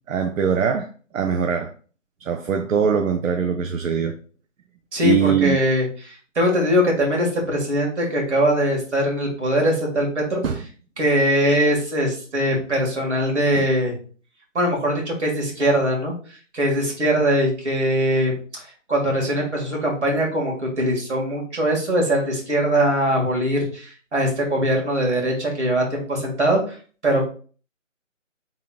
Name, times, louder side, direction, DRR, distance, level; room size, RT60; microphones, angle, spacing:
voice 1, 0.1-0.9 1.1-1.7 2.2-4.1 5.0-5.6 10.4-10.6 13.6-13.7, right 7 dB, 80° right, 0.5 m, -22 dB
voice 2, 4.9-10.4 11.0-14.0 14.5-16.1 16.5-18.6 18.9-26.8 27.0-27.2, equal, 60° right, 1.9 m, -21 dB
3.6 x 3.5 x 2.3 m
figure-of-eight pair, 160°, 39 cm